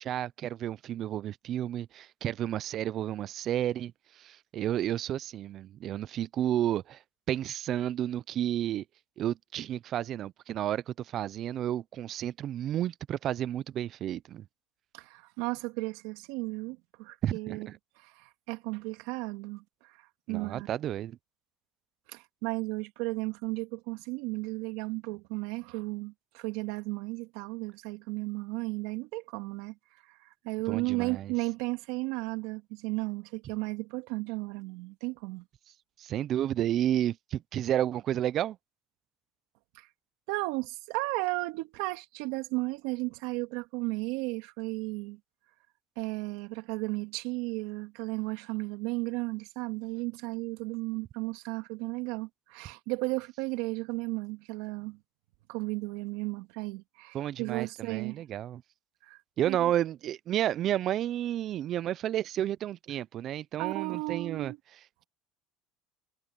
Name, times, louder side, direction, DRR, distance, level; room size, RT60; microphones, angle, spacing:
voice 1, 0.0-3.9 4.2-7.0 7.3-8.8 9.2-14.4 17.2-17.7 20.3-21.2 30.7-31.3 36.0-38.6 57.1-58.6 59.4-64.5, right 11 dB, 50° right, 0.6 m, -31 dB
voice 2, 14.9-17.7 18.0-20.7 22.1-29.8 30.1-35.4 39.7-39.9 40.3-45.2 46.0-55.0 55.5-58.2 59.0-59.2 59.4-59.6 63.6-64.6, right 24 dB, 80° right, 3.0 m, -34 dB
supercardioid pair, 105°, 0 cm